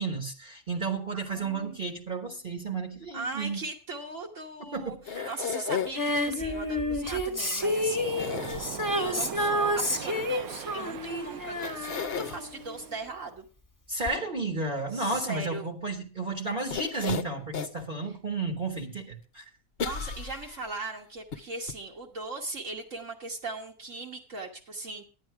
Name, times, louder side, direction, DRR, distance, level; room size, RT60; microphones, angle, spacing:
voice 1, 0.0-3.6 4.6-5.3 13.9-19.5, right 3 dB, 40° right, 3 dB, 1.4 m, -32 dB
voice 2, 1.1-2.0 3.1-8.2 9.0-13.5 14.9-15.7 19.8-25.0, right 3 dB, 60° right, -1 dB, 1.6 m, -39 dB
sound 1, 5.0-6.2 8.2-9.1 11.0-11.1 11.6-12.4 16.7-17.8 18.3-18.4 19.8-20.8 21.3-21.4 21.7-21.8, left 7 dB, 50° left, 0.9 m, -34 dB
Female singing, 5.9-12.9 14.1-14.2, left 1 dB, 15° left, 1.2 m, -30 dB
Waves surf, 7.6-13.0, right 9 dB, 90° right, 1.2 m, -41 dB
10.5 x 9.7 x 4.6 m, 0.35 s
omnidirectional pair, 1.5 m